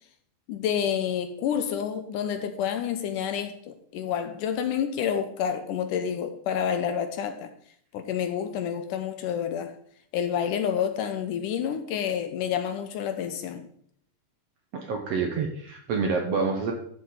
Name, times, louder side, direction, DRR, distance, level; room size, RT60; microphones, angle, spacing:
voice 1, 0.5-7.5 7.9-9.7 10.1-13.7, left 8 dB, 75° left, 2.2 m, -29 dB
voice 2, 14.7-16.7, right 4 dB, 60° right, 1.7 m, -27 dB
13.0 x 7.2 x 4.0 m
omnidirectional pair, 4.1 m